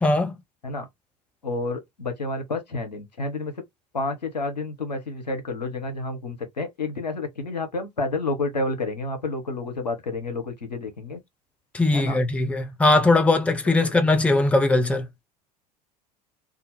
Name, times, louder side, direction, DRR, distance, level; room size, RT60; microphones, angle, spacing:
voice 1, 0.0-0.3 11.7-15.1, left 2 dB, 5° left, 0.5 m, -20 dB
voice 2, 1.4-3.5 3.9-11.2 11.9-12.2 13.8-13.9, left 2 dB, 80° left, 0.9 m, -30 dB
2.7 x 2.5 x 4.0 m
figure-of-eight pair, 70°, 21 cm